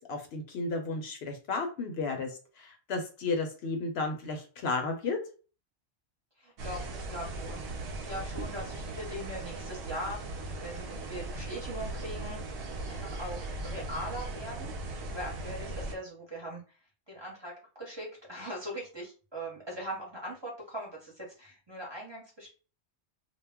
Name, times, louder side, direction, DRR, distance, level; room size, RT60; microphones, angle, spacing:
voice 1, 0.1-5.2, left 3 dB, 70° left, 4 dB, 0.8 m, -33 dB
voice 2, 6.4-7.6 7.9-10.2 10.6-12.6 12.9-14.7 15.1-16.6 17.1-22.5, equal, 25° right, -4 dB, 0.7 m, -41 dB
sound 1, 6.6-15.9, right 2 dB, 65° right, 0.7 m, -38 dB
2.2 x 2.0 x 3.4 m, 0.37 s
omnidirectional pair, 1.2 m